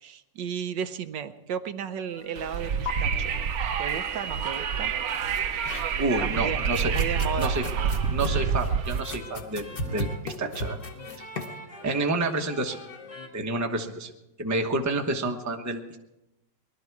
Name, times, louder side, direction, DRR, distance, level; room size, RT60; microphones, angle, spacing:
voice 1, 0.0-3.3 3.8-4.9 6.2-6.6 6.9-7.5 7.8-7.9 9.8-10.1, right 8 dB, 80° right, 10 dB, 1.4 m, -34 dB
sound 1, 1.9-13.3, left 2 dB, 60° left, 2.5 m, -45 dB
Wind, 2.4-9.0, right 6 dB, 60° right, 1.1 m, -28 dB
sound 2, 2.5-2.6 2.9-3.0 5.1-6.2 6.6-11.6, left 2 dB, 35° left, 1.1 m, -36 dB
voice 2, 6.0-6.9 7.4-7.6 8.1-10.8 11.8-12.8 13.3-14.1 14.4-16.0, right 2 dB, 15° right, 3 dB, 0.8 m, -29 dB
20.5 x 12.5 x 4.7 m, 0.93 s
omnidirectional pair, 2.0 m